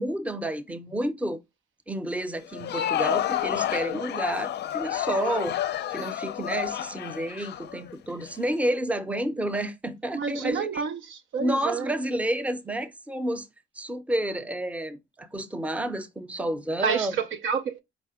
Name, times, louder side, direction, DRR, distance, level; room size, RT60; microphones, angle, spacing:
voice 1, 0.0-1.4 1.9-10.8 11.4-13.5 13.8-17.1, right 1 dB, 5° right, 0.6 m, -30 dB
Crowd, 2.4-8.3, left 12 dB, 60° left, 0.5 m, -30 dB
voice 2, 10.1-11.9 16.8-17.8, right 6 dB, 80° right, 0.7 m, -29 dB
4.9 x 2.1 x 4.8 m
cardioid pair, 90°, 20 cm